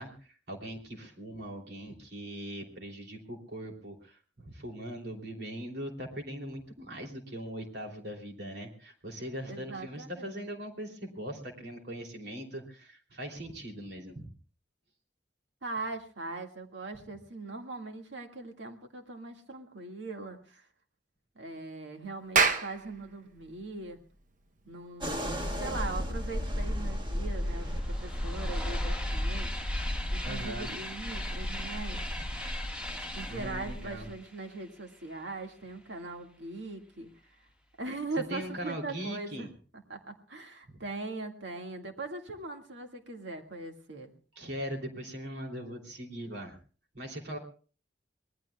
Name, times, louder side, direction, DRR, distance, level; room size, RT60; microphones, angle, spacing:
voice 1, 0.0-14.3 30.2-30.7 33.3-34.1 38.3-39.5 44.3-46.6 46.9-47.4, equal, 65° right, 2 dB, 3.1 m, -40 dB
voice 2, 9.5-10.4 15.6-20.7 21.4-24.0 24.7-29.7 30.1-32.0 33.2-37.1 37.8-39.5 39.9-44.1 47.3-47.4, right 3 dB, 85° right, 4 dB, 1.9 m, -40 dB
Clapping, 22.1-27.0, right 5 dB, 45° right, 1.0 m, -32 dB
sound 1, 25.0-34.1, equal, 25° right, 1.7 m, -34 dB
sound 2, 26.4-26.5 26.7-35.3, left 1 dB, 5° right, 1.6 m, -42 dB
25.0 x 19.5 x 2.3 m, 0.40 s
head